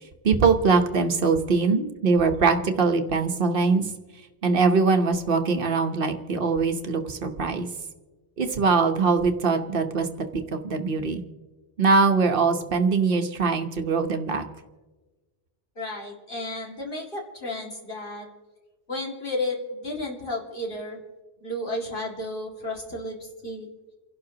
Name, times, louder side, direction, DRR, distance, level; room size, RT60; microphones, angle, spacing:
voice 1, 0.2-3.9 4.4-7.7 8.4-10.1 10.3-11.2 11.8-14.4, right 4 dB, 55° right, 6 dB, 1.1 m, -22 dB
voice 2, 15.8-18.3 18.9-21.0 21.4-23.2 23.4-23.7, left 2 dB, 50° left, -1 dB, 2.4 m, -32 dB
29.0 x 11.5 x 2.8 m, 1.3 s
omnidirectional pair, 1.1 m